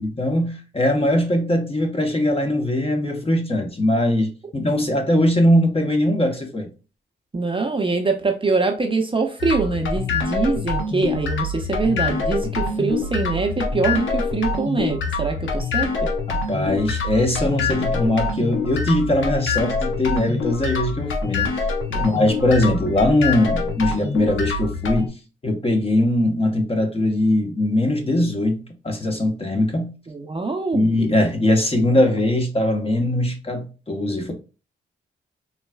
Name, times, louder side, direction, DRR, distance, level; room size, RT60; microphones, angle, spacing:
voice 1, 0.0-6.7 16.3-21.6 22.0-25.2 25.4-29.9 30.7-34.3, left 1 dB, 30° left, 0.9 m, -21 dB
voice 2, 7.3-16.1 21.9-22.0 30.1-30.9, right 3 dB, 25° right, 0.7 m, -23 dB
sound 1, 9.4-25.1, left 4 dB, 75° left, 0.7 m, -25 dB
3.9 x 2.3 x 2.2 m
supercardioid pair, 45°, 20 cm